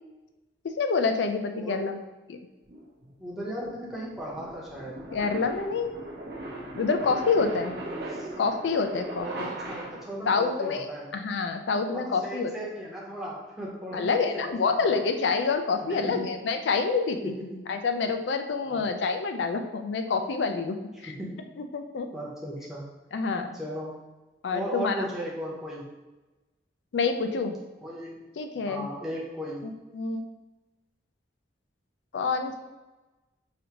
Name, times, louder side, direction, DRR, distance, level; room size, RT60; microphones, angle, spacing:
voice 1, 0.8-2.0 2.3-2.4 5.1-6.0 6.7-7.7 8.4-9.5 10.3-10.9 11.1-12.5 13.9-17.3 17.7-20.8 21.0-21.1 21.7-22.1 23.1-23.5 24.4-25.0 26.9-27.6 28.4-28.9 29.6-30.2 32.1-32.7, left 4 dB, 80° left, 7 dB, 0.4 m, -27 dB
voice 2, 1.6-1.9 3.2-5.0 7.4-8.3 9.2-11.1 11.9-15.1 15.9-16.4 17.2-17.7 18.6-18.9 21.1-21.5 22.1-22.9 23.5-23.9 24.5-25.9 27.8-28.2 28.7-29.7, equal, ahead, -6 dB, 0.8 m, -36 dB
sound 1, 2.7-10.3, right 1 dB, 60° right, 0.7 m, -39 dB
4.9 x 2.6 x 2.9 m, 1.1 s
head